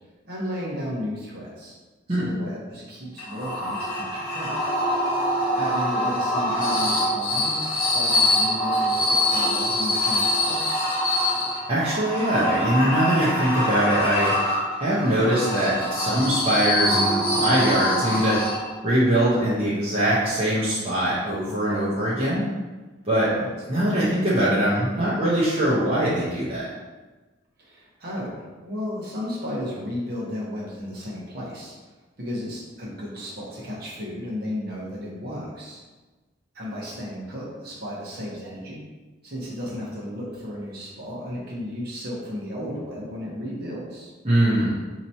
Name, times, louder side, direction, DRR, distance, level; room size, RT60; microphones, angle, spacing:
voice 1, 0.2-1.7 2.1-4.6 5.5-10.7 23.1-23.5 27.6-31.8 32.2-35.8 36.5-38.8 39.2-44.1, left 1 dB, 50° right, -5 dB, 1.0 m, -34 dB
sound 1, 3.2-18.9, left 1 dB, 45° left, 0.9 m, -24 dB
voice 2, 11.7-14.4 14.8-18.5 18.8-22.5 23.0-23.3 23.7-26.7 44.2-44.7, right 1 dB, 30° right, -10 dB, 0.7 m, -22 dB
4.3 x 2.9 x 2.7 m, 1.2 s
head